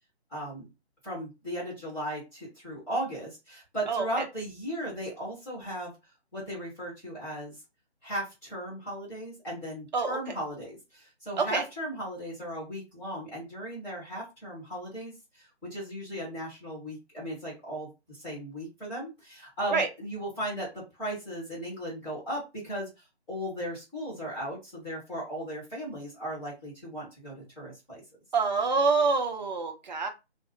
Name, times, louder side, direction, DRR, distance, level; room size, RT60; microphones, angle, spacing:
voice 1, 0.3-0.7 1.0-5.9 6.3-7.6 8.0-15.1 15.6-22.9 23.3-28.0, equal, 5° left, -9 dB, 0.9 m, -36 dB
voice 2, 3.9-4.2 9.9-10.3 11.4-11.6 19.7-19.9 28.3-30.1, right 4 dB, 40° right, 3 dB, 0.7 m, -26 dB
2.4 x 2.0 x 3.5 m, 0.25 s
figure-of-eight pair, 150°, 34 cm